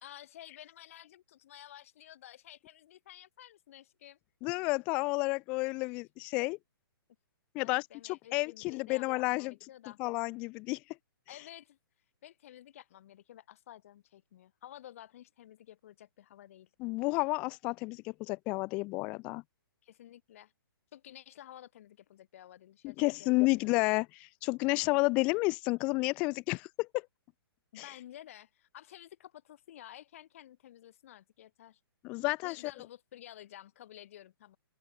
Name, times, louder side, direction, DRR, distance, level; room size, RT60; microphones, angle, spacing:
voice 1, 0.0-4.2 7.6-10.0 11.3-11.8 12.2-16.7 19.8-20.5 20.9-23.5 27.7-31.8 32.4-34.6, left 12 dB, 35° left, 2.1 m, -52 dB
voice 2, 4.4-6.6 7.5-9.5 10.0-10.8 16.8-19.4 22.8-27.0 27.8-27.9 32.0-32.6, left 25 dB, 10° left, 0.3 m, -31 dB
open air
hypercardioid pair, 175°, 13 cm